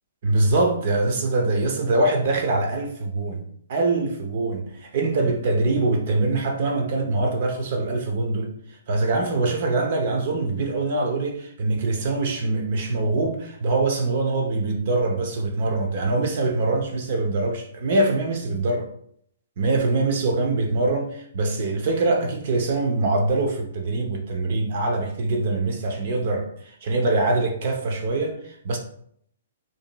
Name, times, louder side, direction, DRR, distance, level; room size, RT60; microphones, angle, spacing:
voice 1, 0.2-3.4 3.7-18.9 19.6-28.8, right 2 dB, 55° right, 3 dB, 0.6 m, -23 dB
5.0 x 2.8 x 2.3 m, 0.66 s
hypercardioid pair, 135°, 0 cm